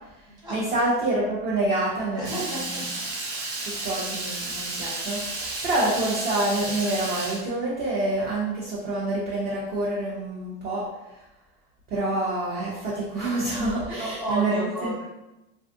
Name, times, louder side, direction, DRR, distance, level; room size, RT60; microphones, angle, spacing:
voice 1, 0.2-2.8 3.6-10.9 11.9-14.9, right 2 dB, 30° right, -5 dB, 0.6 m, -27 dB
voice 2, 2.1-2.8 3.1-3.7 13.9-15.0, right 1 dB, 15° right, -7 dB, 1.2 m, -33 dB
Water tap faucet / Liquid, 2.2-7.4, right 2 dB, 65° right, 1.0 m, -32 dB
3.3 x 2.3 x 2.6 m, 0.95 s
cardioid pair, 145°, 31 cm